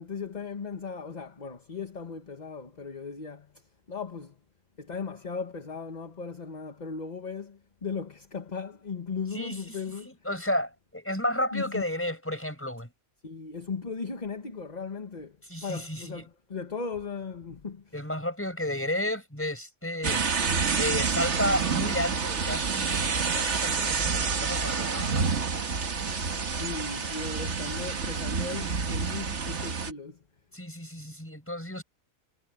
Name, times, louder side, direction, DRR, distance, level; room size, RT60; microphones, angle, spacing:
voice 1, 0.0-3.5 3.9-4.3 4.8-10.1 11.5-11.8 13.2-15.4 15.6-17.9 26.5-30.2, left 5 dB, 30° left, 1.3 m, -37 dB
voice 2, 9.3-9.8 10.1-12.9 15.5-16.2 17.9-20.3 20.8-25.3 30.5-31.8, left 1 dB, 10° left, 5.5 m, -32 dB
sound 1, 20.0-29.9, right 5 dB, 55° right, 1.7 m, -28 dB
omnidirectional pair, 1.5 m